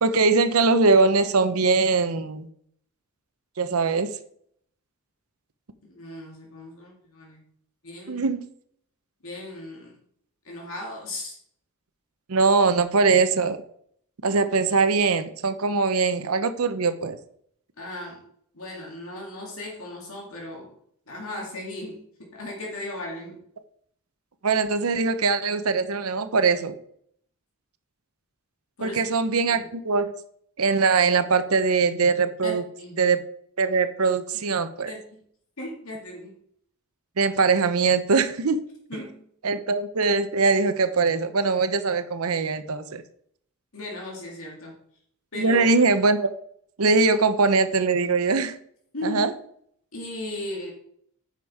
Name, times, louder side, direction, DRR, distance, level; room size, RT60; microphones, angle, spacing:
voice 1, 0.0-2.5 3.6-4.1 8.1-8.4 12.3-13.6 14.2-17.2 24.4-26.7 28.8-30.1 30.6-32.6 33.0-33.2 33.6-34.9 37.2-38.6 39.4-43.0 45.4-46.3 46.8-48.5 49.0-49.3, right 4 dB, 75° right, 10 dB, 0.8 m, -22 dB
voice 2, 5.9-7.5 7.8-8.3 9.2-10.0 10.4-11.4 17.8-18.2 18.5-20.7 21.1-23.4 28.8-29.0 29.5-29.6 32.4-32.5 32.8-33.0 34.9-35.2 35.6-36.3 38.9-39.3 43.7-44.7 45.3-45.6 48.9-49.2 49.9-50.7, left 1 dB, 70° left, -2 dB, 2.2 m, -36 dB
9.5 x 5.3 x 4.8 m, 0.66 s
head